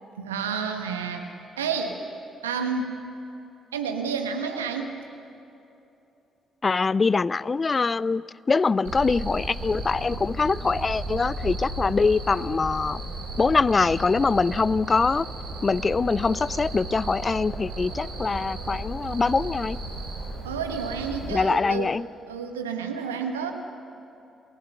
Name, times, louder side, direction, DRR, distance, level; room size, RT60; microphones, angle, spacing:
voice 1, 0.2-1.3 1.6-2.0 2.4-3.0 3.7-4.9 20.4-22.0 22.2-23.5, right 6 dB, 80° right, 4 dB, 1.3 m, -30 dB
voice 2, 6.6-8.2 8.5-13.0 13.4-15.3 15.6-19.8 21.3-22.1, left 4 dB, 30° left, 21 dB, 0.4 m, -23 dB
Cricket, 8.8-21.3, right 2 dB, 65° right, 5.1 m, -35 dB
28.5 x 17.5 x 6.6 m, 2.8 s
figure-of-eight pair, 40°, 0 cm